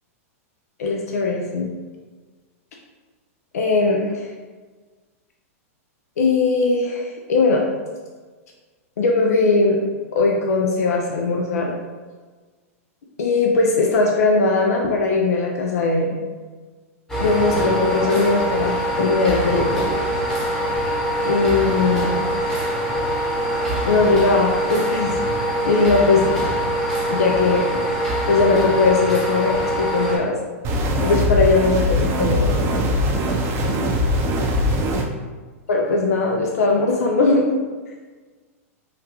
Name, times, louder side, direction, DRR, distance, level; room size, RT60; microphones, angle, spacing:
voice 1, 0.8-1.7 3.5-4.2 6.2-7.6 9.0-9.8 10.1-11.7 13.2-16.2 17.2-19.9 21.2-22.3 23.7-25.2 25.6-26.3 27.1-27.7 28.3-30.4 31.0-32.6 35.7-37.5, left 3 dB, 85° left, 0 dB, 0.5 m, -19 dB
sound 1, 17.1-30.2, equal, 5° left, 0.9 m, -23 dB
sound 2, 30.6-35.0, left 1 dB, 35° right, 0.5 m, -21 dB
3.6 x 2.3 x 2.9 m, 1.4 s
hypercardioid pair, 130°, 8 cm